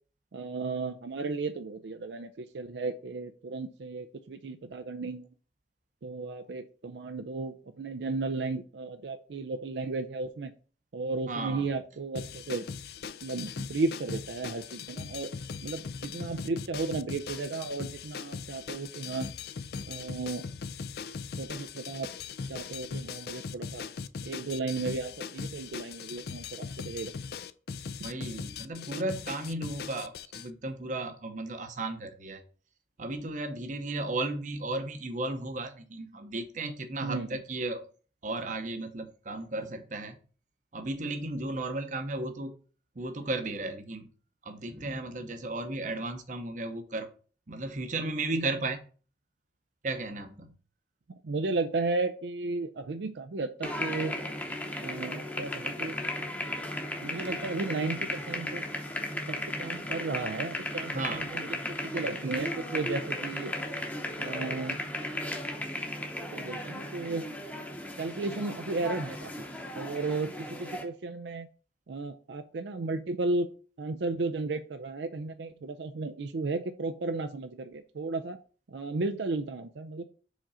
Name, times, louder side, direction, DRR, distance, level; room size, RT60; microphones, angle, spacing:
voice 1, 0.3-5.3 6.0-10.5 10.9-12.6 13.2-15.3 15.6-19.3 19.9-20.5 21.4-22.1 22.5-23.9 24.2-27.1 28.0-28.1 37.0-37.4 51.2-54.1 54.8-56.0 57.0-58.6 59.3-61.6 61.8-63.6 64.2-64.8 66.3-67.2 68.0-69.3 69.8-71.5 71.9-73.5 73.8-78.4 78.7-80.0, right 3 dB, 75° right, 8 dB, 0.5 m, -34 dB
voice 2, 11.3-11.7 28.0-32.4 33.0-37.9 38.2-40.2 40.7-42.5 43.0-44.1 44.4-47.1 47.5-48.9 49.8-50.5 60.9-61.3, right 2 dB, 45° right, 8 dB, 0.8 m, -35 dB
sound 1, 12.1-30.5, left 5 dB, 60° left, 0.4 m, -40 dB
sound 2, 53.6-70.8, left 1 dB, 10° left, 0.8 m, -36 dB
5.0 x 3.8 x 5.5 m, 0.40 s
head